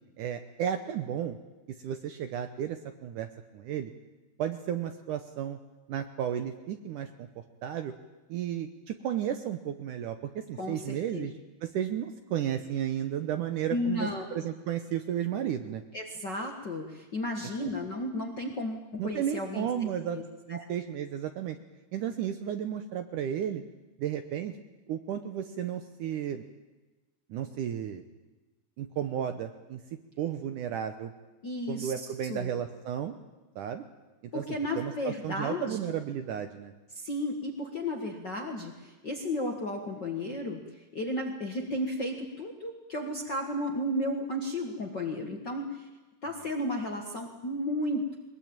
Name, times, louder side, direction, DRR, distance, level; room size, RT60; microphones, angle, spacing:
voice 1, 0.2-1.4 1.8-3.3 3.5-3.9 4.4-5.6 5.9-7.9 8.3-11.3 11.6-15.8 17.6-17.7 19.0-20.2 20.5-21.6 21.9-23.6 24.0-24.5 24.9-26.4 27.3-28.0 28.8-29.8 30.2-31.1 31.7-33.1 33.6-33.9 34.3-34.4 34.8-36.7, right 10 dB, 70° right, 8 dB, 2.0 m, -33 dB
voice 2, 10.6-11.3 13.7-14.3 15.9-20.2 20.5-20.6 31.4-32.5 34.3-35.9 36.9-45.9 46.2-48.2, left 1 dB, 45° left, 2 dB, 1.4 m, -34 dB
22.0 x 21.0 x 8.9 m, 1.2 s
omnidirectional pair, 4.6 m